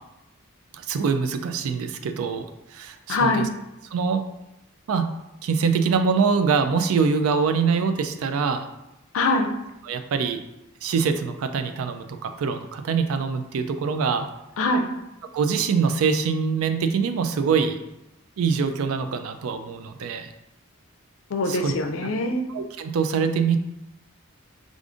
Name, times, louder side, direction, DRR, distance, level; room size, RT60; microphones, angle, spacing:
voice 1, 0.7-2.5 2.7-3.3 3.9-4.2 4.9-5.1 5.4-8.7 9.9-10.4 10.8-14.3 15.3-17.8 18.4-20.3 21.5-21.7 22.5-23.6, right 5 dB, 80° right, 8 dB, 0.3 m, -24 dB
voice 2, 3.1-3.5 9.1-9.5 14.6-14.9 21.3-22.4, left 2 dB, 70° left, 4 dB, 0.4 m, -23 dB
4.8 x 2.5 x 2.5 m, 0.92 s
head